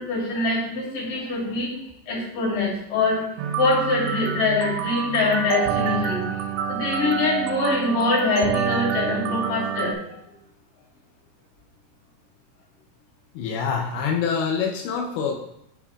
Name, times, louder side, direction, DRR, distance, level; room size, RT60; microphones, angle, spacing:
voice 1, 0.0-1.7 2.1-3.2 3.6-6.4 6.7-10.2, left 3 dB, 55° left, -4 dB, 3.9 m, -24 dB
sound 1, 3.4-9.9, right 8 dB, 75° right, 2.5 m, -27 dB
voice 2, 13.3-15.4, left 6 dB, 90° left, 1 dB, 3.1 m, -25 dB
8.3 x 6.9 x 2.4 m, 0.77 s
omnidirectional pair, 5.0 m